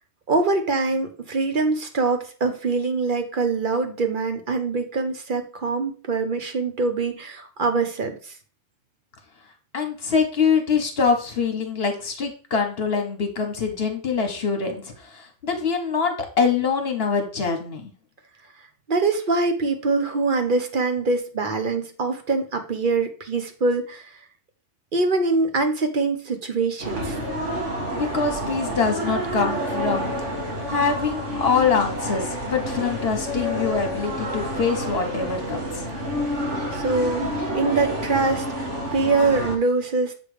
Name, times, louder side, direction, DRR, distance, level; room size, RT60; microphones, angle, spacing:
voice 1, 0.3-8.3 18.9-24.1 24.9-27.2 36.7-40.1, right 3 dB, 45° right, 6 dB, 1.0 m, -24 dB
voice 2, 9.7-17.9 27.9-30.1 30.7-35.8, left 5 dB, 55° left, 5 dB, 1.5 m, -24 dB
sound 1, 26.8-39.6, equal, 70° right, 2.1 m, -29 dB
7.1 x 3.4 x 4.8 m, 0.39 s
omnidirectional pair, 1.3 m